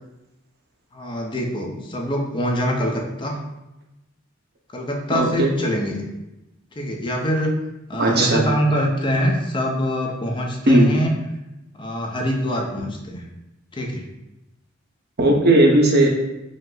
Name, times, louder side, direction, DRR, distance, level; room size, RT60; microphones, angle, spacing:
voice 1, 0.9-3.4 4.7-6.0 6.8-7.5 7.9-11.1 11.7-13.3 13.7-14.0, equal, 25° left, 0 dB, 0.6 m, -24 dB
voice 2, 5.1-5.5 8.0-8.4 10.7-10.9 15.2-16.1, right 1 dB, 50° right, 0 dB, 0.8 m, -16 dB
5.2 x 2.0 x 3.8 m, 0.93 s
head